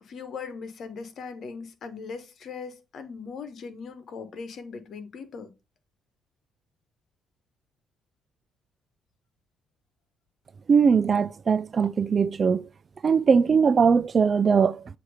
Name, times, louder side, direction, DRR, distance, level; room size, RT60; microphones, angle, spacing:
voice 1, 0.0-5.5, left 5 dB, 60° left, 1.2 m, -39 dB
voice 2, 10.7-12.7 13.0-15.0, right 6 dB, 40° right, 0.3 m, -21 dB
7.7 x 2.9 x 4.8 m
cardioid pair, 90°, 0 cm